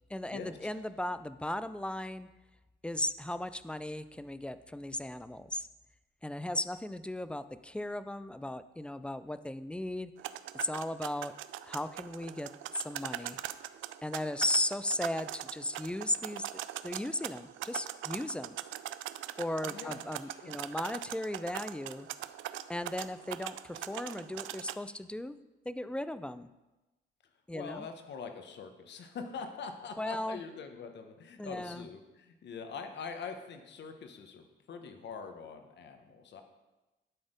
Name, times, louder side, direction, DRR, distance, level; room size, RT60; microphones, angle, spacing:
voice 1, 0.1-2.3 2.8-5.7 6.2-10.1 10.5-11.3 11.6-13.4 14.0-16.4 16.8-18.6 19.4-22.1 22.7-25.4 25.7-26.5 27.5-27.9 30.0-30.4 31.4-31.9, left 1 dB, 5° left, 13 dB, 0.4 m, -36 dB
sound 1, 10.2-24.8, right 13 dB, 80° right, 0.4 m, -42 dB
voice 2, 19.6-20.6 27.5-36.4, left 5 dB, 60° left, 6 dB, 1.2 m, -44 dB
11.5 x 4.3 x 5.1 m, 1.1 s
cardioid pair, 90°, 20 cm